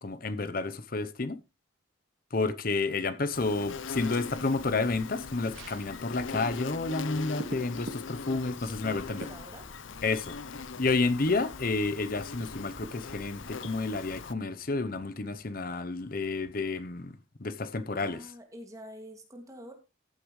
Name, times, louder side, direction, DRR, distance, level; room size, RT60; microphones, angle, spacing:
voice 1, 0.0-1.4 2.3-9.3 10.0-10.4 10.8-17.1 17.4-18.2, left 3 dB, 45° left, 0.8 m, -30 dB
Insect, 3.3-14.3, left 5 dB, 80° left, 0.7 m, -41 dB
sound 1, 4.3-13.5, equal, 20° left, 2.4 m, -53 dB
sound 2, 5.5-17.2 17.6-17.7, right 1 dB, 85° right, 2.0 m, -50 dB
voice 2, 8.6-9.7 18.0-19.7, equal, 15° right, 2.4 m, -47 dB
14.5 x 8.5 x 3.2 m
head